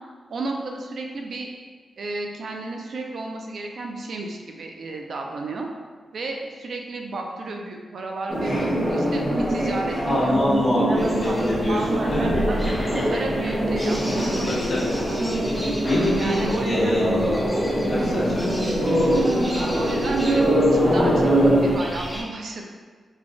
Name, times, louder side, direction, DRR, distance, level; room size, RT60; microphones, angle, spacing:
voice 1, 0.3-1.5 2.0-5.7 6.1-10.3 10.8-11.4 11.7-12.6 13.0-15.6 16.2-17.0 19.7-22.7, right 2 dB, 55° right, 1 dB, 0.4 m, -32 dB
sound 1, 8.3-21.8, equal, 30° right, 0.9 m, -23 dB
voice 2, 10.0-12.3 14.4-14.8 15.8-17.3 17.9-18.5, left 1 dB, 50° left, -10 dB, 1.4 m, -25 dB
sound 2, 11.0-22.2, equal, ahead, 0.6 m, -35 dB
5.1 x 2.3 x 2.5 m, 1.5 s
wide cardioid pair, 175°, 0 cm